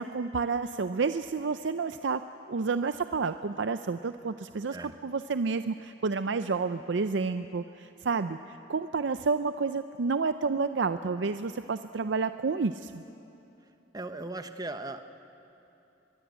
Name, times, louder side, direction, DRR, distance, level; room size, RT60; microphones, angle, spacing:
voice 1, 0.0-2.2 2.5-13.0, right 4 dB, 75° right, 10 dB, 0.5 m, -30 dB
voice 2, 13.9-15.0, right 2 dB, 20° right, 9 dB, 0.9 m, -37 dB
23.0 x 22.5 x 8.2 m, 2.9 s
head